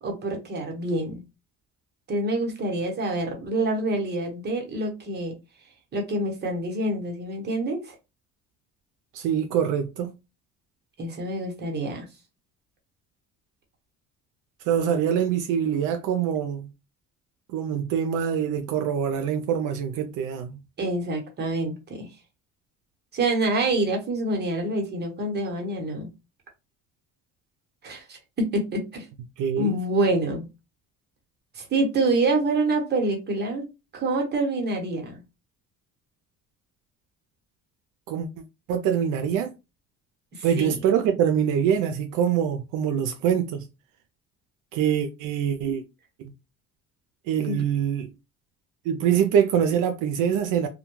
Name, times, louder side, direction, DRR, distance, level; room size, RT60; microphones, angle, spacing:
voice 1, 0.0-1.2 2.1-5.3 5.9-7.9 11.0-12.1 20.8-22.1 23.1-26.1 27.8-29.0 29.6-30.5 31.5-33.7 33.9-35.2 40.3-40.8 47.4-47.6, right 2 dB, 35° right, 0.9 m, -26 dB
voice 2, 9.1-10.1 14.7-16.7 17.5-20.6 29.4-29.8 38.1-38.3 38.7-39.5 40.4-43.7 44.7-45.8 46.2-46.3 47.3-48.1 48.9-50.7, right 8 dB, 75° right, 0.5 m, -24 dB
2.2 x 2.2 x 3.0 m
cardioid pair, 120°, 31 cm